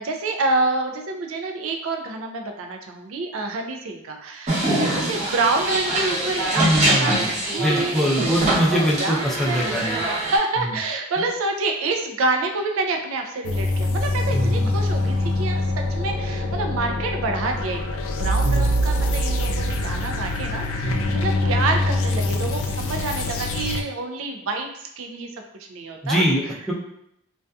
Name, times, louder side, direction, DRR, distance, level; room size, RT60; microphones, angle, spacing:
voice 1, 0.0-8.6 9.0-25.3 25.7-26.2, right 3 dB, 90° right, 4 dB, 0.4 m, -27 dB
sound 1, 4.5-10.4, right 1 dB, 35° right, 0.8 m, -24 dB
voice 2, 6.6-7.3 7.6-10.0 10.6-10.7 14.3-14.7 18.4-18.7 20.8-21.1 26.0-26.7, equal, ahead, -5 dB, 0.4 m, -23 dB
sound 2, 13.4-23.8, left 1 dB, 75° left, 0.3 m, -24 dB
2.6 x 2.2 x 2.3 m, 0.76 s
head